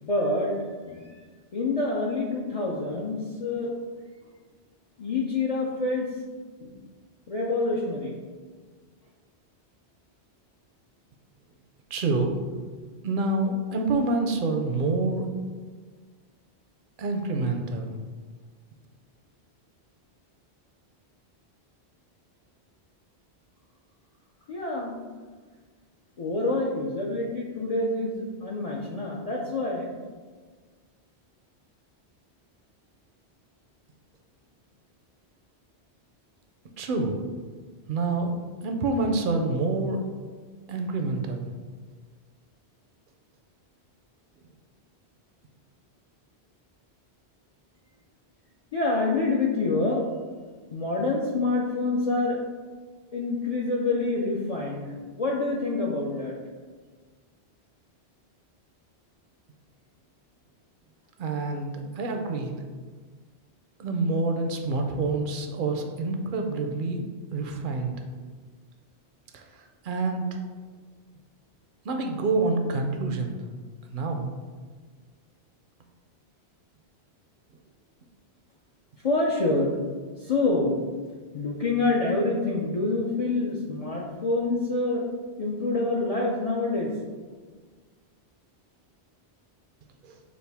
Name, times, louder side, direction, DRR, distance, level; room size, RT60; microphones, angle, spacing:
voice 1, 0.0-1.3 1.5-3.7 5.0-6.1 6.6-6.8 7.3-8.2 24.5-25.0 26.2-29.9 48.7-50.1 50.7-52.4 53.1-56.4 79.0-79.8 80.2-80.8 81.3-85.0 85.4-86.9, left 2 dB, 50° left, -3 dB, 0.4 m, -27 dB
voice 2, 11.9-12.3 13.0-15.3 17.0-18.0 36.8-37.2 37.9-38.3 38.6-40.0 40.7-41.5 61.2-62.5 63.8-67.0 67.3-67.9 69.3-69.4 69.8-70.4 71.8-73.3 73.9-74.3 90.0-90.1, right 3 dB, 60° right, 4 dB, 0.6 m, -27 dB
6.2 x 2.5 x 3.4 m, 1.5 s
omnidirectional pair, 1.1 m